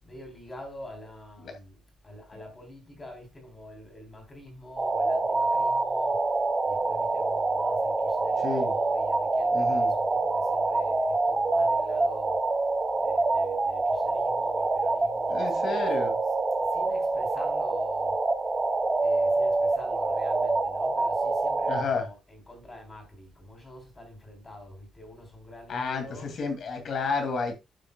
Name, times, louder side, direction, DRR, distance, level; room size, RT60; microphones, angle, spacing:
voice 1, 0.0-6.4 6.6-12.4 12.9-15.8 16.2-16.3 16.6-18.2 19.0-26.5, left 1 dB, 15° left, 3.5 m, -46 dB
sound 1, 4.8-21.8, right 3 dB, 15° right, 0.6 m, -26 dB
voice 2, 8.4-8.7 9.5-9.9 15.3-16.1 21.7-22.1 25.7-27.6, left 4 dB, 45° left, 2.5 m, -31 dB
11.5 x 6.8 x 2.3 m
cardioid pair, 175°, 0 cm